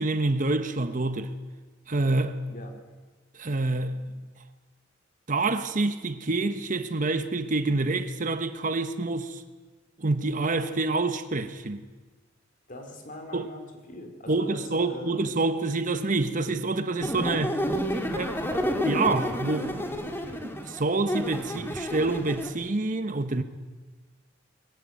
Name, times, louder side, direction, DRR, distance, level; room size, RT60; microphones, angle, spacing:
voice 1, 0.0-1.3 1.9-2.4 3.3-4.0 5.3-9.4 10.0-11.8 13.3-13.5 14.3-17.6 18.0-23.4, right 3 dB, 40° right, 1.1 m, -27 dB
voice 2, 2.5-2.8 12.7-13.6 13.9-15.2, left 1 dB, 45° left, 4.0 m, -41 dB
sound 1, 17.0-22.5, equal, 10° left, 2.0 m, -30 dB
21.5 x 16.0 x 9.1 m
head